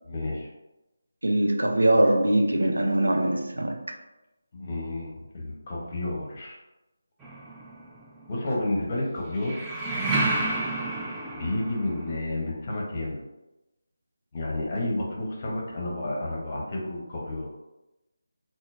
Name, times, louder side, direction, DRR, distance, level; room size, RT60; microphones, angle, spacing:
voice 1, 0.1-0.5 4.5-6.6 8.3-9.6 11.3-13.2 14.3-17.5, left 1 dB, 35° left, -3 dB, 0.8 m, -31 dB
voice 2, 1.2-3.9, right 1 dB, 75° right, 4 dB, 0.4 m, -22 dB
sound 1, 7.2-8.1 9.4-12.2, right 2 dB, 5° right, 0.3 m, -30 dB
3.8 x 2.0 x 2.4 m, 0.97 s
figure-of-eight pair, 155°, 0 cm